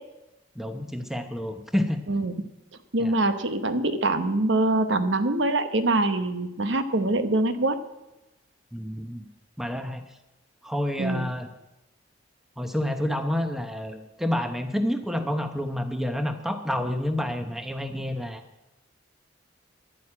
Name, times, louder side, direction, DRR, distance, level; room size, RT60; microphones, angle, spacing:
voice 1, 0.6-2.0 3.0-3.2 8.7-9.3 9.6-10.0 10.6-11.5 12.6-18.4, left 1 dB, ahead, 7 dB, 0.9 m, -29 dB
voice 2, 2.9-7.8 11.0-11.3, right 2 dB, 70° right, 10 dB, 1.0 m, -24 dB
11.5 x 9.3 x 8.7 m, 0.97 s
head